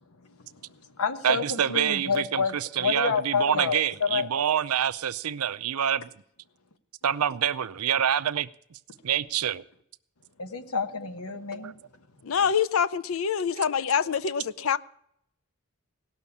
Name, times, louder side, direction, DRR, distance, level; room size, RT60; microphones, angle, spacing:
voice 1, 0.2-4.3 10.4-11.8, left 5 dB, 90° left, 1.1 m, -29 dB
voice 2, 1.2-6.1 7.0-8.8 9.0-9.6 11.5-11.7 13.5-13.6, right 9 dB, 90° right, 0.5 m, -27 dB
voice 3, 12.2-14.8, left 7 dB, 65° left, 0.5 m, -25 dB
17.5 x 6.4 x 8.4 m
head